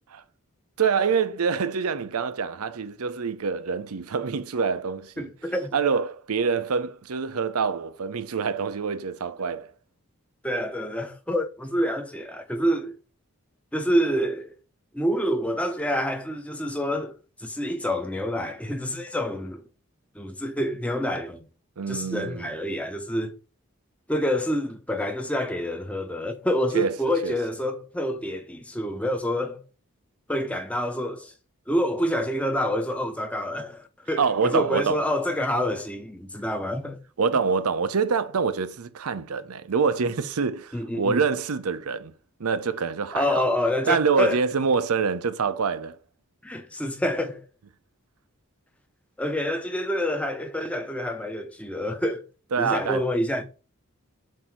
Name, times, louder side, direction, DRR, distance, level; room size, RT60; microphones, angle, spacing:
voice 1, 0.8-5.3 5.7-9.7 21.8-22.5 26.7-27.0 27.2-27.3 34.2-35.0 37.2-42.1 42.4-43.5 43.9-46.0 52.5-53.0, right 5 dB, 85° right, 0.6 m, -26 dB
voice 2, 5.2-5.7 10.4-12.9 13.7-14.5 14.9-19.6 20.1-21.5 21.9-23.3 24.1-29.6 30.3-31.3 31.7-37.0 40.7-41.2 43.1-44.4 46.4-47.5 49.2-52.2 52.6-53.4, equal, 5° left, 0.6 m, -27 dB
7.5 x 2.7 x 4.5 m
head